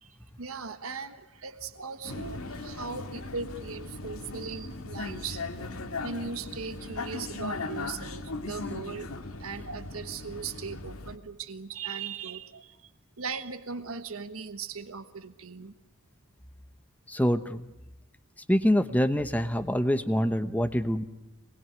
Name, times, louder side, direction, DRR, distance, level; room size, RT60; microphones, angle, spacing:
voice 1, 0.0-5.4 6.0-9.1 9.4-12.9 13.2-15.7, right 5 dB, 80° right, 10 dB, 1.3 m, -39 dB
Vehicle, 2.0-11.2, left 3 dB, 85° left, 2.0 m, -38 dB
voice 2, 17.1-17.7 18.5-21.0, equal, 5° left, 10 dB, 1.0 m, -25 dB
26.5 x 20.5 x 9.6 m, 0.92 s
head